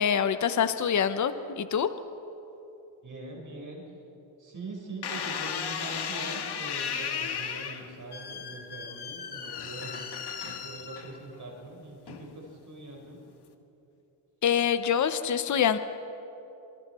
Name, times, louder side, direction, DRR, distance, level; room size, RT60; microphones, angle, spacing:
voice 1, 0.0-1.9 14.4-15.8, left 8 dB, 35° left, 11 dB, 0.9 m, -25 dB
voice 2, 3.0-3.8 4.4-10.0 10.4-13.2, right 2 dB, 35° right, -1 dB, 4.7 m, -42 dB
sound 1, 5.0-11.4 12.1-12.5, left 7 dB, 50° left, 1.7 m, -35 dB
26.0 x 25.5 x 4.3 m, 2.9 s
cardioid pair, 115°, 49 cm